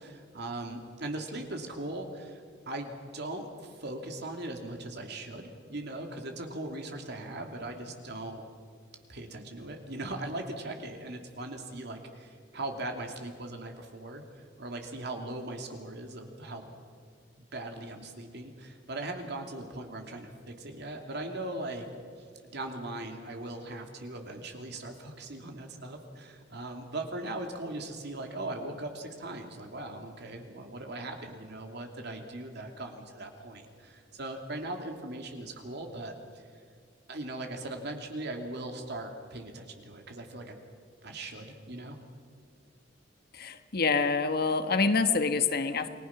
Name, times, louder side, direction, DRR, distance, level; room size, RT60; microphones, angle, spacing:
voice 1, 0.0-8.4 9.1-16.6 17.4-21.9 22.4-36.4 37.1-40.6 41.0-42.0, right 2 dB, 60° right, 3 dB, 2.8 m, -39 dB
voice 2, 43.3-45.9, left 4 dB, 55° left, 9 dB, 1.3 m, -26 dB
29.0 x 20.0 x 6.0 m, 2.1 s
head